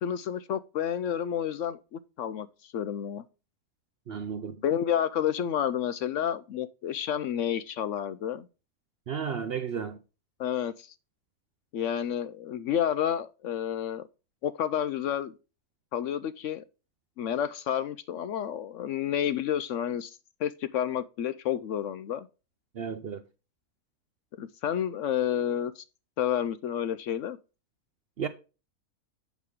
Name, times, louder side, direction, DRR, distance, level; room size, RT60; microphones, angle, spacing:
voice 1, 0.0-3.2 4.6-8.5 10.4-10.9 11.7-14.1 14.4-15.3 15.9-16.6 17.2-22.3 24.4-25.8 26.2-27.4, left 9 dB, 70° left, 0.8 m, -30 dB
voice 2, 4.1-4.6 9.1-10.0 22.7-23.2 28.2-28.3, right 7 dB, 60° right, 0.7 m, -33 dB
8.2 x 6.2 x 3.5 m
omnidirectional pair, 1.5 m